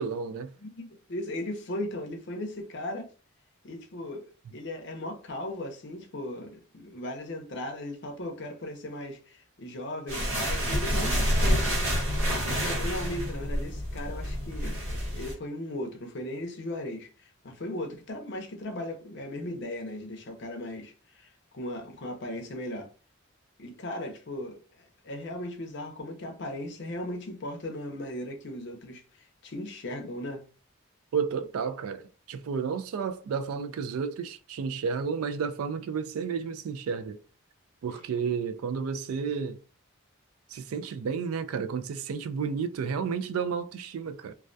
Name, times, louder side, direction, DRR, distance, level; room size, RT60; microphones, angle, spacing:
voice 1, 0.0-0.5 31.1-37.2 37.8-39.6 40.5-44.3, right 6 dB, 85° right, 0.3 m, -31 dB
voice 2, 0.6-3.1 3.6-11.7 12.4-22.9 23.6-30.4, left 1 dB, 55° left, 0.5 m, -37 dB
sound 1, 10.1-15.3, equal, 70° right, 1.0 m, -28 dB
2.2 x 2.1 x 2.5 m
head